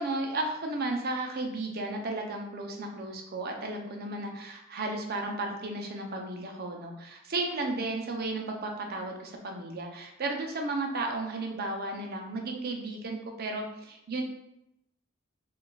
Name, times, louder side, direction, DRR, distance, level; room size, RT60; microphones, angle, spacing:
voice 1, 0.0-14.2, right 2 dB, 45° right, 2 dB, 0.6 m, -34 dB
4.8 x 2.4 x 2.3 m, 0.82 s
head